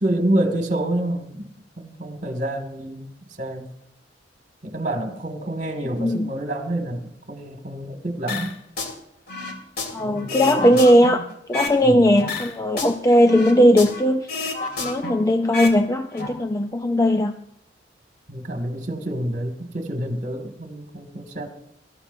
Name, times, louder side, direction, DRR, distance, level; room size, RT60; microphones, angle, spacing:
voice 1, 0.0-3.1 3.4-3.7 4.6-8.5 10.0-10.8 11.8-12.2 18.3-21.5, right 1 dB, 45° right, 4 dB, 2.2 m, -28 dB
voice 2, 6.0-6.3 9.9-11.2 11.5-14.3 14.8-17.3, equal, 20° left, 6 dB, 0.5 m, -18 dB
sound 1, 8.3-8.9 9.3-11.8 12.2-14.0 14.3-15.8 16.0-16.3, left 3 dB, 60° left, 2.6 m, -30 dB
24.0 x 13.5 x 2.7 m, 0.76 s
head